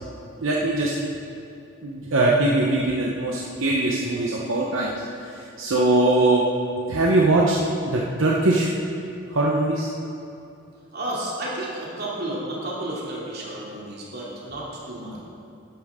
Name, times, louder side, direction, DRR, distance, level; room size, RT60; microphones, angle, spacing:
voice 1, 0.4-0.9 1.8-4.9 5.2-6.4 6.9-7.6 7.8-8.7 9.3-9.9, right 2 dB, 75° right, -3 dB, 1.0 m, -21 dB
voice 2, 10.9-15.2, right 1 dB, 50° right, -5 dB, 2.8 m, -32 dB
12.0 x 11.5 x 3.7 m, 2.8 s
head